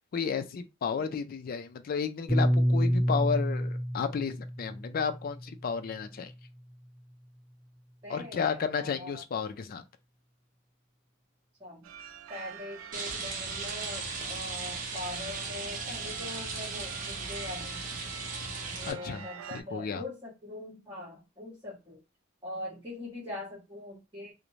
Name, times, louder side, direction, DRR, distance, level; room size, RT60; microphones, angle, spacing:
voice 1, 0.1-6.3 8.1-9.8 18.9-20.0, left 6 dB, 45° left, 0.3 m, -32 dB
Piano, 2.3-6.7, equal, ahead, 1.2 m, -29 dB
voice 2, 8.0-9.2 11.6-11.8 12.3-17.8 18.8-22.0 22.4-24.3, left 2 dB, 20° right, 1.0 m, -42 dB
sound 1, 11.8-19.6, right 8 dB, 85° right, 0.4 m, -47 dB
Rain, 12.9-18.9, right 4 dB, 40° right, 0.7 m, -37 dB
2.5 x 2.1 x 3.0 m
head